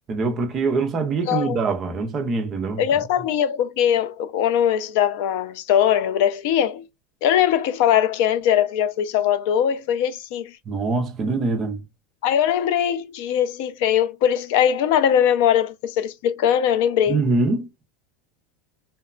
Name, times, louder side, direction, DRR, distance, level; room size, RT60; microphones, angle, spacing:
voice 1, 0.1-2.8 10.7-11.8 17.1-17.7, right 3 dB, 20° right, 0.4 m, -23 dB
voice 2, 2.8-6.8 7.2-10.5 12.2-17.2, left 9 dB, 55° left, 0.3 m, -21 dB
2.9 x 2.1 x 2.4 m
supercardioid pair, 180°, 0 cm